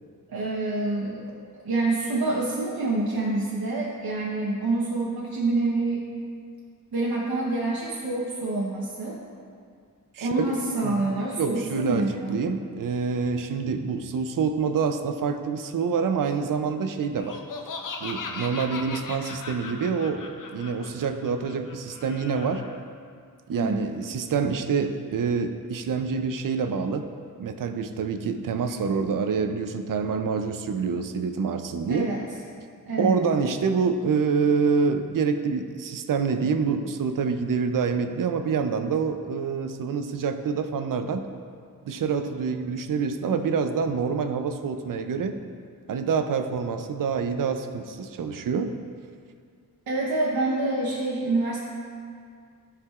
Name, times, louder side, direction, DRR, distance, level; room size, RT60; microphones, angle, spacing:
voice 1, 0.3-1.2 1.6-6.0 6.9-9.2 10.2-12.4 23.5-23.9 31.9-32.2 32.9-33.2 49.9-51.6, right 2 dB, 90° right, -4 dB, 1.0 m, -27 dB
voice 2, 11.4-12.0 12.3-17.4 18.0-22.6 23.5-27.1 27.4-32.1 33.0-41.3 41.9-45.4 45.9-48.7, right 5 dB, 65° right, 8 dB, 0.5 m, -26 dB
Laughter, 17.2-22.8, left 4 dB, 60° left, 0.7 m, -38 dB
13.5 x 4.8 x 2.4 m, 2.2 s
wide cardioid pair, 140°, 35 cm